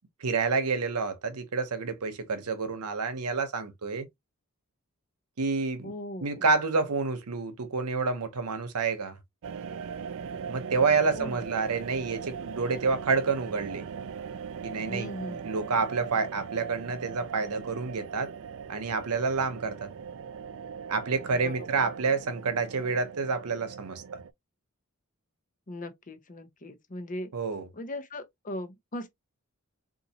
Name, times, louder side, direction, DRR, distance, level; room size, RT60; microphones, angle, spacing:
voice 1, 0.2-4.1 5.4-5.9 6.2-9.2 10.5-13.8 14.6-15.1 15.4-18.3 18.7-19.9 20.9-24.0 27.3-27.6, right 4 dB, 85° right, 0.8 m, -28 dB
voice 2, 5.8-6.5 11.1-11.3 14.9-15.8 21.3-21.9 25.7-27.3 27.7-29.1, left 1 dB, 35° left, 0.7 m, -39 dB
sound 1, 9.4-24.3, right 6 dB, 60° right, 0.3 m, -40 dB
3.9 x 2.6 x 2.7 m
head